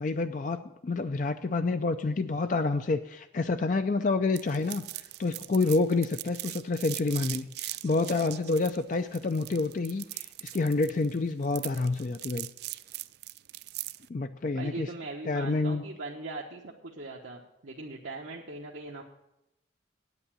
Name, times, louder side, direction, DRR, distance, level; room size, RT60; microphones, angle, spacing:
voice 1, 0.0-12.5 14.1-14.9 15.2-15.8, left 3 dB, 40° left, 8 dB, 0.4 m, -28 dB
sound 1, 4.4-14.1, right 17 dB, 55° right, 0.3 m, -40 dB
voice 2, 14.5-19.0, right 2 dB, 80° right, -3 dB, 1.1 m, -40 dB
9.0 x 8.2 x 8.6 m, 0.87 s
head